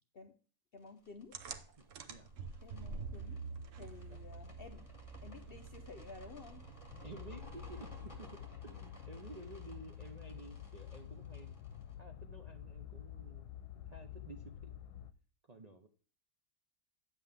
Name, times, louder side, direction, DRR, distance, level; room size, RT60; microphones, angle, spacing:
voice 1, 0.7-1.4 2.6-3.4 3.7-4.9 5.2-6.7, left 5 dB, 55° left, 6 dB, 0.6 m, -53 dB
audio jaune, 0.8-11.9, left 1 dB, 20° left, 2.0 m, -61 dB
sound 1, 1.3-8.5, right 4 dB, 60° right, 1.1 m, -48 dB
voice 2, 1.8-2.3 2.8-2.9 3.8-4.2 7.0-11.5 12.0-13.4 13.9-14.8 15.5-15.9, right 3 dB, 40° right, 3 dB, 0.5 m, -53 dB
sound 2, 6.9-15.1, left 10 dB, 80° left, 1.2 m, -49 dB
9.3 x 7.7 x 3.4 m, 0.41 s
omnidirectional pair, 1.7 m